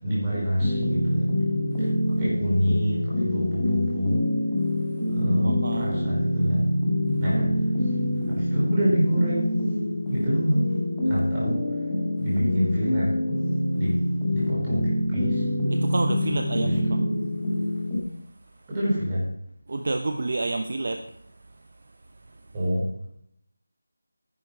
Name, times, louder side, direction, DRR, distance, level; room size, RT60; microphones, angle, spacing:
voice 1, 0.0-1.3 1.8-1.9 2.2-4.2 5.1-6.7 7.2-7.5 8.3-9.6 10.1-10.8 11.1-11.6 12.2-13.1 13.8-15.5 16.6-16.9 18.7-19.2 22.5-22.9, equal, 15° right, -7 dB, 4.9 m, -26 dB
sound 1, 0.6-18.0, left 1 dB, 5° left, 2.2 m, -26 dB
voice 2, 5.4-5.9 15.7-17.0 19.7-22.5, right 2 dB, 45° right, 5 dB, 0.9 m, -31 dB
12.5 x 11.0 x 4.6 m, 0.70 s
figure-of-eight pair, 175°, 0 cm